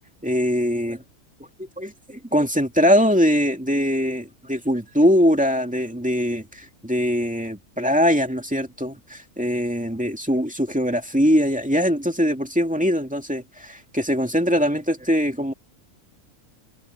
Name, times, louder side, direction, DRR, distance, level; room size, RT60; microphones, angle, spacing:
voice 1, 0.2-1.0 1.6-15.5, equal, 5° right, 2.3 m, -22 dB
omnidirectional pair, 1.6 m